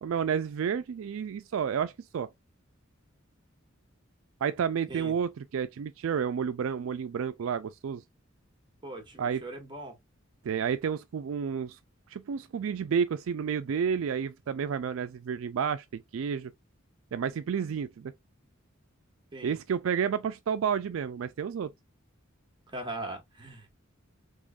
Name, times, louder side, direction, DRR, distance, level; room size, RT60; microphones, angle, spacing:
voice 1, 0.0-2.3 4.4-8.0 9.2-9.4 10.4-11.8 12.1-16.5 17.1-18.1 19.4-21.7, right 7 dB, 75° right, 0.4 m, -30 dB
voice 2, 8.8-9.9 19.3-19.6 22.7-23.7, right 2 dB, 25° right, 1.6 m, -40 dB
3.7 x 3.4 x 2.4 m
head